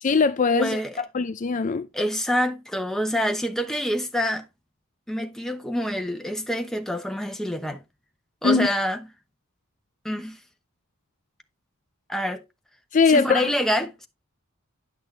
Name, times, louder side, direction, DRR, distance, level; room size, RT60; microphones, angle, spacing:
voice 1, 0.0-1.9 8.4-8.7 12.9-13.5, left 5 dB, 35° left, 0.4 m, -21 dB
voice 2, 0.5-1.0 1.9-4.5 5.1-7.8 8.4-9.0 10.0-10.4 12.1-12.4 13.1-14.1, equal, ahead, 0.9 m, -26 dB
10.5 x 6.2 x 3.3 m
head